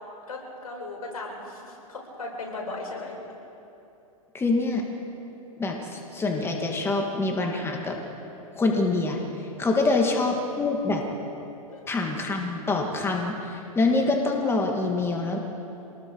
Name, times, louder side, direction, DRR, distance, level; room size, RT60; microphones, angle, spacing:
voice 1, 0.3-3.1 9.7-10.1 11.7-11.9, left 2 dB, 90° left, -2 dB, 6.4 m, -37 dB
voice 2, 4.3-4.8 5.6-8.0 8.6-9.2 9.6-11.0 11.9-15.4, left 3 dB, 15° left, 1 dB, 2.4 m, -25 dB
26.5 x 20.0 x 4.9 m, 2.9 s
hypercardioid pair, 120°, 18 cm